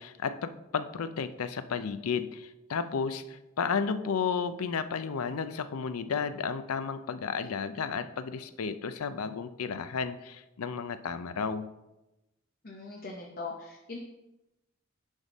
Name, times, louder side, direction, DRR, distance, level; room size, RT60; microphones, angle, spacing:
voice 1, 0.0-11.7, left 6 dB, 85° left, 12 dB, 0.5 m, -33 dB
voice 2, 12.6-14.0, left 3 dB, 40° left, -1 dB, 0.8 m, -40 dB
10.0 x 3.6 x 4.1 m, 0.95 s
head